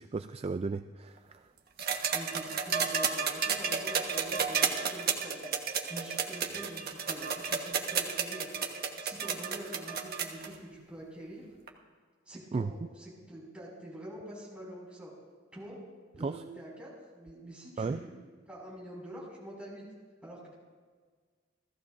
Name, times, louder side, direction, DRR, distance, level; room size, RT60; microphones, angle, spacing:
voice 1, 0.0-1.5 12.5-12.7 16.2-16.4 17.8-18.0, right 4 dB, 30° right, 10 dB, 0.3 m, -34 dB
sound 1, 1.8-10.5 11.7-11.8, right 6 dB, 50° right, 1.3 m, -31 dB
voice 2, 2.1-5.5 5.9-11.5 12.3-15.1 15.5-15.8 16.1-18.2 18.5-19.8 20.2-20.5, right 1 dB, 5° right, -5 dB, 6.0 m, -46 dB
30.0 x 14.5 x 2.6 m, 1.5 s
head